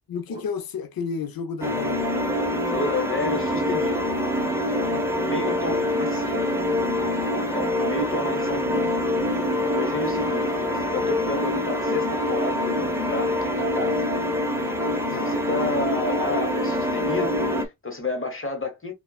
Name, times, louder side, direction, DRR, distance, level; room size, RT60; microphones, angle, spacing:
voice 1, 0.1-2.1 10.2-10.9 15.1-15.4, left 6 dB, 70° left, 0.6 m, -33 dB
sound 1, 1.6-17.6, left 1 dB, 5° right, 0.8 m, -25 dB
voice 2, 2.6-4.1 4.7-6.5 7.3-8.9 9.6-14.0 15.1-18.9, left 2 dB, 35° left, 1.2 m, -31 dB
5.6 x 2.3 x 2.3 m
wide cardioid pair, 125°, 37 cm